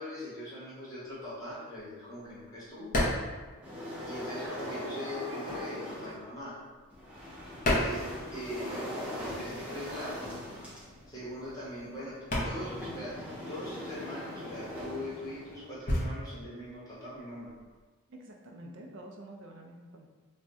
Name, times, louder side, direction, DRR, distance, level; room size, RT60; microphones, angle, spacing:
voice 1, 0.0-2.9 4.0-6.6 7.7-10.2 11.1-17.6, equal, 15° left, -9 dB, 1.0 m, -41 dB
sound 1, 1.1-4.5 4.7-8.9 9.1-17.9, left 1 dB, 35° left, 0.6 m, -35 dB
sound 2, 3.6-6.2 6.9-15.8, left 1 dB, 5° right, 0.5 m, -41 dB
voice 2, 18.1-20.1, right 1 dB, 55° right, 1 dB, 0.4 m, -48 dB
2.6 x 2.1 x 3.5 m, 1.3 s
head